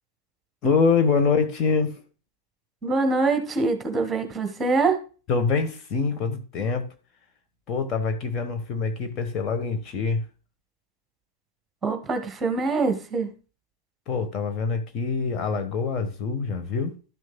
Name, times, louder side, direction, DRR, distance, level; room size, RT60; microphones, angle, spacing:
voice 1, 0.6-2.0 5.3-6.9 7.7-10.2 14.1-16.9, left 5 dB, 35° left, 1.2 m, -25 dB
voice 2, 2.8-5.0 11.8-13.3, right 3 dB, 15° right, 1.4 m, -24 dB
12.0 x 6.3 x 2.2 m
figure-of-eight pair, 90°, 0 cm